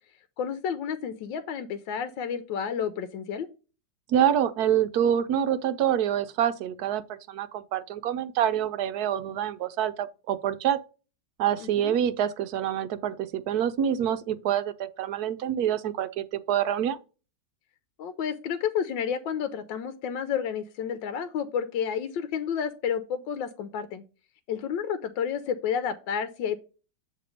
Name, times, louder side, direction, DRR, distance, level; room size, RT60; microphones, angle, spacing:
voice 1, 0.4-3.5 11.6-12.0 18.0-24.0 24.5-26.6, left 7 dB, 90° left, 1.4 m, -30 dB
voice 2, 4.1-10.8 11.4-17.0, right 10 dB, 65° right, 1.0 m, -26 dB
8.3 x 3.3 x 5.1 m
omnidirectional pair, 2.0 m